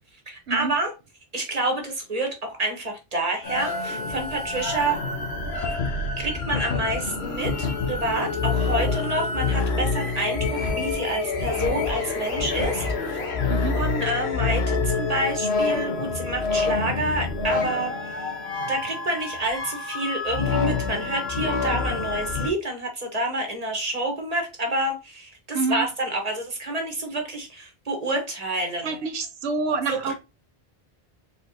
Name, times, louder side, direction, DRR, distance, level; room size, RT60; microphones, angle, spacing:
voice 1, 0.3-0.9 1.3-5.0 6.2-13.2 13.4-18.3 18.7-29.0 29.9-30.1, right 2 dB, 40° right, 1.3 m, -28 dB
sound 1, 3.4-22.5, left 4 dB, 90° left, 1.3 m, -27 dB
voice 2, 13.5-13.8 25.5-25.9 28.8-30.1, right 4 dB, 85° right, 1.0 m, -27 dB
4.1 x 4.0 x 2.7 m
omnidirectional pair, 1.0 m